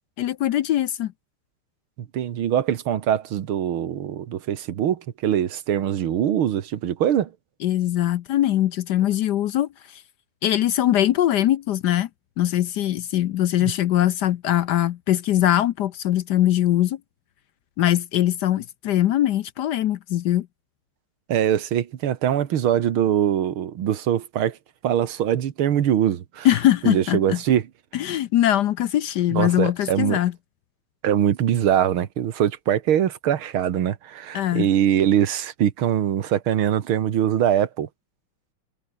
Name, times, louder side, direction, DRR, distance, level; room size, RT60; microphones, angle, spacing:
voice 1, 0.2-1.1 7.6-10.0 10.4-12.1 12.4-17.0 17.8-20.5 26.4-27.4 27.9-30.3 34.3-34.7, left 12 dB, 65° left, 1.1 m, -21 dB
voice 2, 2.1-7.3 21.3-24.6 24.8-26.5 26.8-27.6 29.3-30.2 31.0-37.9, right 10 dB, 90° right, 2.2 m, -22 dB
omnidirectional pair, 2.2 m